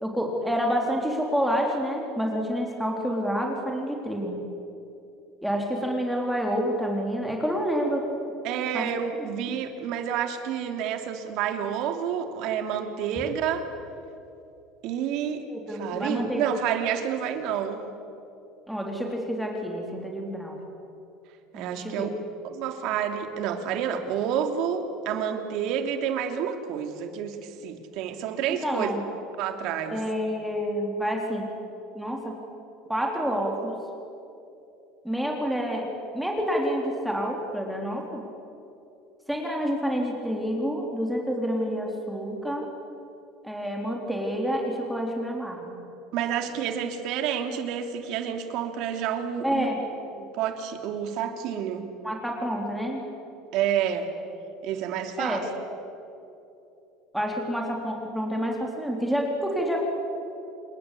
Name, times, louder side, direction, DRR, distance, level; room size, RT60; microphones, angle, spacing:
voice 1, 0.0-4.4 5.4-8.1 8.7-8.9 9.2-9.3 15.5-16.5 18.7-20.6 21.5-22.1 28.5-29.0 29.9-31.5 32.0-32.4 32.9-33.8 35.0-35.9 36.1-38.3 39.3-42.7 43.4-45.8 49.4-49.8 52.0-53.1 55.2-55.4 57.1-59.8, equal, ahead, 0 dB, 3.5 m, -28 dB
voice 2, 8.4-13.7 14.8-15.4 15.8-17.8 21.5-22.1 22.5-28.9 29.4-30.0 46.1-49.7 50.1-51.9 53.5-54.1 54.6-55.4, right 8 dB, 60° right, 6 dB, 2.9 m, -29 dB
28.0 x 21.5 x 8.5 m, 2.7 s
cardioid pair, 135°, 0 cm